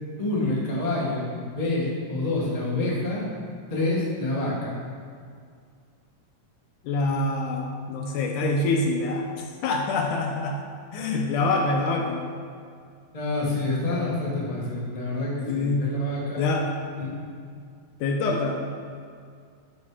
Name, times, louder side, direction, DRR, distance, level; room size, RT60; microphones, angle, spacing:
voice 1, 0.2-3.2 3.7-4.8 13.1-16.4 17.0-17.1, left 2 dB, 25° left, -5 dB, 0.7 m, -27 dB
voice 2, 6.8-10.6 10.9-12.3 15.5-15.9 16.4-16.7 18.0-18.6, left 2 dB, 75° left, 1 dB, 2.0 m, -25 dB
13.0 x 4.4 x 4.9 m, 2.2 s
omnidirectional pair, 3.9 m